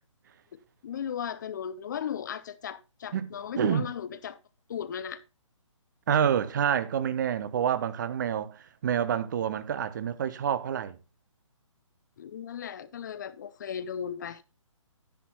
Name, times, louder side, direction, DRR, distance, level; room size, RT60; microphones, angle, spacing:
voice 1, 0.8-4.4 4.7-5.2 12.2-14.4, left 8 dB, 35° left, 0.5 m, -36 dB
voice 2, 3.6-3.9 6.1-11.0, right 8 dB, 35° right, 0.7 m, -28 dB
10.5 x 10.5 x 2.3 m
hypercardioid pair, 155°, 17 cm